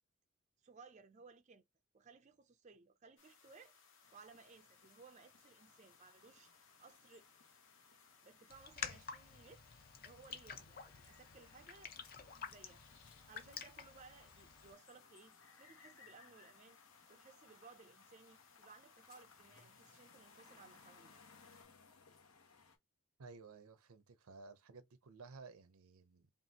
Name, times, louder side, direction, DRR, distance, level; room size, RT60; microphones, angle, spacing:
voice 1, 0.6-1.6 1.9-3.7 4.1-6.5 6.8-7.3 8.2-9.8 10.0-12.0 12.5-12.8 13.1-16.8 17.1-21.1, right 4 dB, 35° right, 0.4 m, -61 dB
sound 1, 3.2-21.6, left 6 dB, 60° left, 1.0 m, -66 dB
sound 2, 4.0-22.8, left 4 dB, 80° left, 1.3 m, -67 dB
Raindrop, 8.5-14.7, left 6 dB, 45° left, 0.6 m, -50 dB
voice 2, 23.2-26.3, right 4 dB, 85° right, 0.7 m, -56 dB
5.2 x 2.5 x 2.8 m
head